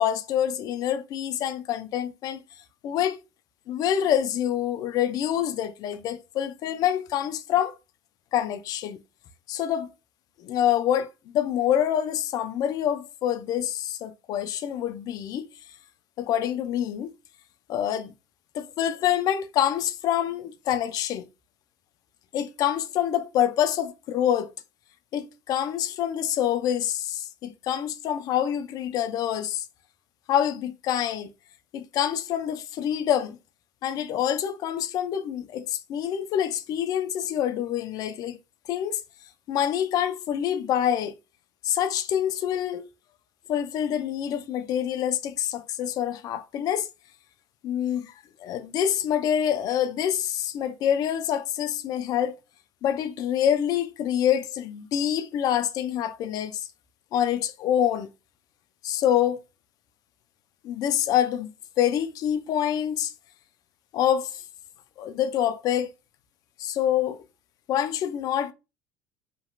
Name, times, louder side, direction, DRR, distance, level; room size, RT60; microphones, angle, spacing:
voice 1, 0.0-2.4 2.8-3.2 3.7-7.7 8.3-9.0 9.5-9.9 10.4-15.5 16.2-17.1 17.7-18.1 18.5-21.3 22.3-24.5 25.1-29.7 30.3-31.3 31.7-33.4 33.8-38.4 38.7-39.0 39.5-41.1 41.6-42.9 43.5-46.9 47.6-48.1 48.4-52.4 52.8-56.7 57.1-58.1 58.8-59.4 60.6-61.5 61.8-63.1 63.9-64.4 65.0-65.9 66.6-67.2 67.7-68.5, left 10 dB, 50° left, 0.4 m, -26 dB
3.0 x 2.7 x 2.3 m
hypercardioid pair, 75°, 8 cm